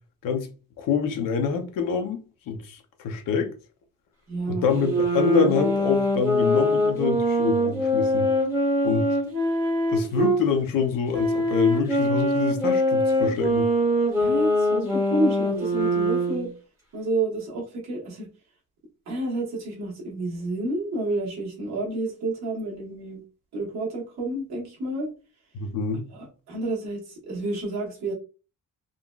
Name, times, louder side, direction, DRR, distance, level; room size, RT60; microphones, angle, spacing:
voice 1, 0.8-3.5 4.5-8.3 8.8-9.0 9.9-13.7 25.5-26.0, left 6 dB, 70° left, 0.6 m, -26 dB
voice 2, 4.3-4.6 14.2-16.5 16.9-18.3 19.1-23.2 23.5-25.1 26.1-28.1, right 2 dB, 50° right, 1.2 m, -29 dB
sound 1, 4.7-10.4 11.1-16.5, equal, 10° right, 1.0 m, -23 dB
3.7 x 2.1 x 2.3 m
cardioid pair, 175°, 35 cm